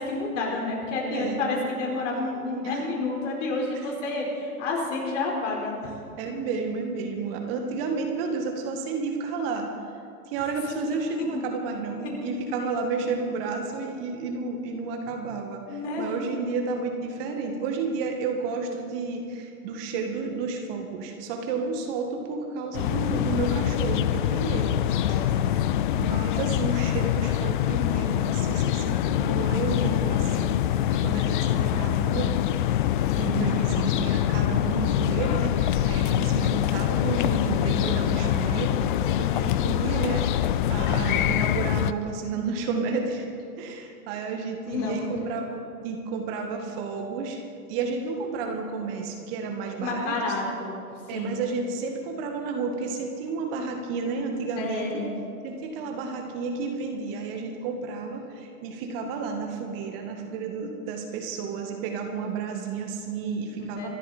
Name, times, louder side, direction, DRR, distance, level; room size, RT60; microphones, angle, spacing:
voice 1, 0.0-5.9 10.9-11.4 12.0-12.3 15.7-16.2 25.0-25.3 25.7-25.9 44.7-45.0 49.8-50.8 51.1-51.4 54.6-55.2 63.7-63.9, left 3 dB, 55° left, -1 dB, 4.7 m, -30 dB
voice 2, 1.1-1.5 2.6-2.8 6.2-9.7 10.3-15.6 16.0-24.8 25.1-25.3 25.9-30.6 30.9-32.4 33.2-43.3 43.6-47.4 47.7-50.1 51.1-55.0 55.4-63.9, right 4 dB, 40° right, 3 dB, 2.0 m, -31 dB
sound 1, 22.7-41.9, left 12 dB, 35° left, 0.5 m, -24 dB
25.5 x 12.5 x 4.4 m, 2.5 s
figure-of-eight pair, 110°, 45 cm